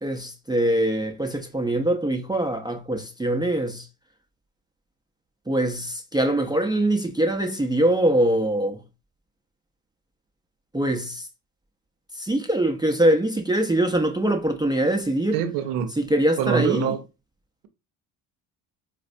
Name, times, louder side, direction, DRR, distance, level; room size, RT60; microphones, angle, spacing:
voice 1, 0.0-3.9 5.5-8.8 10.7-11.3 12.1-15.4 15.9-16.9, right 1 dB, 10° right, 0.4 m, -23 dB
voice 2, 15.3-15.9 16.4-17.0, right 8 dB, 85° right, 0.7 m, -24 dB
4.1 x 2.1 x 2.5 m
supercardioid pair, 65°, 47 cm